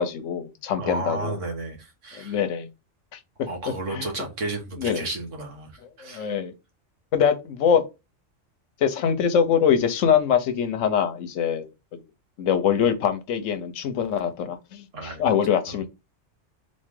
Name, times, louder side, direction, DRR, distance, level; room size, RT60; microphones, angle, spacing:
voice 1, 0.0-1.4 2.1-2.7 3.1-3.2 3.9-4.1 4.8-5.1 6.0-6.5 7.1-7.8 8.8-12.0 12.4-15.9, left 7 dB, 85° left, 1.1 m, -23 dB
voice 2, 0.8-2.4 3.5-6.4 14.9-15.2 15.7-15.8, right 3 dB, 75° right, 1.6 m, -33 dB
3.7 x 3.2 x 3.6 m
omnidirectional pair, 1.3 m